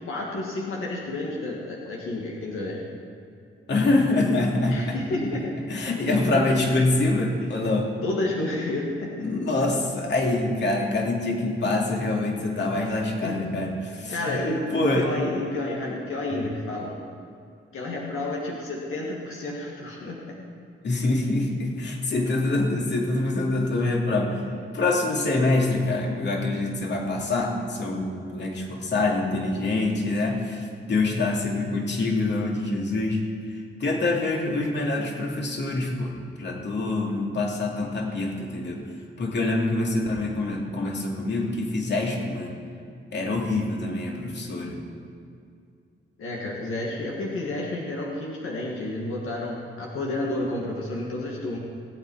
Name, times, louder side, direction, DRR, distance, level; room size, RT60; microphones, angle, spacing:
voice 1, 0.1-2.8 4.7-5.5 8.0-9.2 13.2-13.4 14.1-16.9 17.7-20.4 46.2-51.6, left 2 dB, 90° left, -2 dB, 1.9 m, -30 dB
voice 2, 3.7-4.9 5.2-5.3 5.7-7.9 9.2-14.4 14.7-15.1 16.3-16.4 20.8-24.4 24.7-33.2 33.5-38.8 39.2-42.5 43.1-44.8, left 2 dB, 60° left, -1 dB, 2.5 m, -25 dB
19.5 x 9.0 x 4.8 m, 2.4 s
cardioid pair, 95°, 21 cm